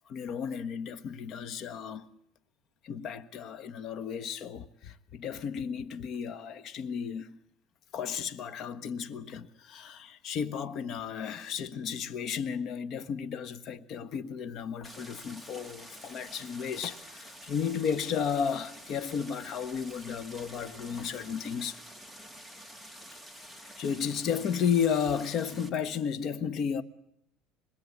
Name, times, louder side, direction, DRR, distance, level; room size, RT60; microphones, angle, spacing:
voice 1, 0.1-2.1 2.8-7.3 7.9-21.8 23.4-26.8, left 7 dB, 50° left, 1.4 m, -33 dB
Stream, 14.8-25.7, equal, 5° left, 2.3 m, -48 dB
25.5 x 21.5 x 8.6 m
supercardioid pair, 115°, 0 cm